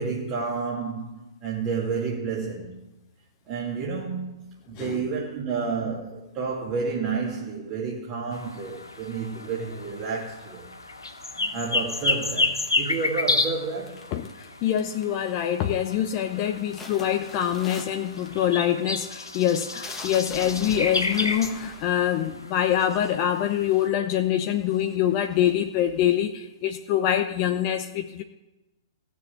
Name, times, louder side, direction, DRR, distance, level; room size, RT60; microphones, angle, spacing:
voice 1, 0.0-2.8 3.5-4.4 4.7-10.7 11.5-14.1, right 5 dB, 35° right, 2.6 m, -30 dB
sound 1, 8.3-23.9, left 2 dB, 85° left, 1.6 m, -31 dB
sound 2, 12.1-13.1 13.9-14.4 14.7-15.2 15.6-16.0 16.3-23.4 24.0-24.1 24.4-26.0, left 3 dB, 15° left, 1.8 m, -44 dB
voice 2, 14.1-28.2, left 10 dB, 35° left, 0.9 m, -25 dB
16.5 x 7.1 x 8.8 m
figure-of-eight pair, 115°, 2 cm